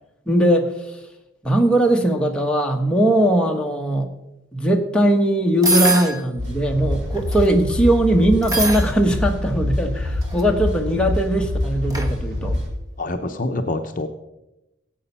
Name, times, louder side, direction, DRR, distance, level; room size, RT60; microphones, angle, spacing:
voice 1, 0.3-1.0 1.4-4.1 4.5-12.6, right 1 dB, 5° left, 1 dB, 1.2 m, -19 dB
sound 1, 5.6-6.2 7.1-7.5 8.4-8.9 10.0-10.4 11.9-12.1, right 2 dB, 15° right, 1.3 m, -22 dB
sound 2, 6.4-12.7, left 1 dB, 65° right, 4.0 m, -25 dB
voice 2, 13.0-14.1, left 2 dB, 40° left, 6 dB, 0.8 m, -26 dB
16.5 x 8.1 x 5.5 m, 0.92 s
head